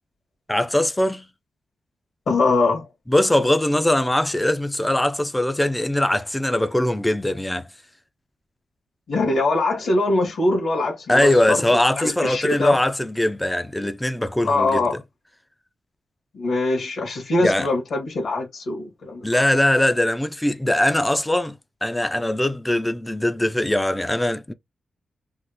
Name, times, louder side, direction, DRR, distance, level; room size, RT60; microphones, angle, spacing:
voice 1, 0.5-1.3 3.1-7.7 11.1-15.0 17.4-17.7 19.2-24.5, left 1 dB, 5° left, 0.3 m, -21 dB
voice 2, 2.3-2.9 9.1-11.6 12.0-12.8 14.4-14.9 16.3-19.3, left 2 dB, 65° left, 1.6 m, -22 dB
3.6 x 2.3 x 2.8 m
wide cardioid pair, 155°, 0 cm